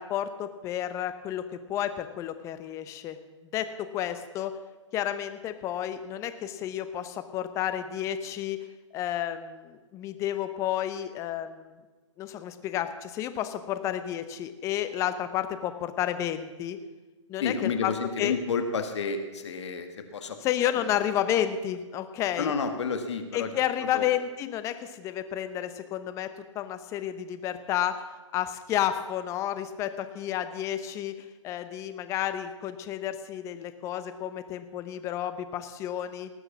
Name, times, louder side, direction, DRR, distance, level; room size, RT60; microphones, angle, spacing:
voice 1, 0.0-1.4 1.7-3.2 3.5-4.5 4.9-8.6 8.9-11.8 12.2-16.8 17.3-17.9 18.2-18.3 20.4-22.5 23.3-26.3 26.5-27.9 28.3-31.1 31.4-36.3, left 11 dB, 20° left, 10 dB, 0.8 m, -31 dB
voice 2, 17.4-20.4 20.7-20.9 22.4-23.5 23.9-24.1, left 5 dB, 60° left, 7 dB, 1.7 m, -30 dB
18.5 x 6.5 x 7.3 m, 1.2 s
hypercardioid pair, 145°, 16 cm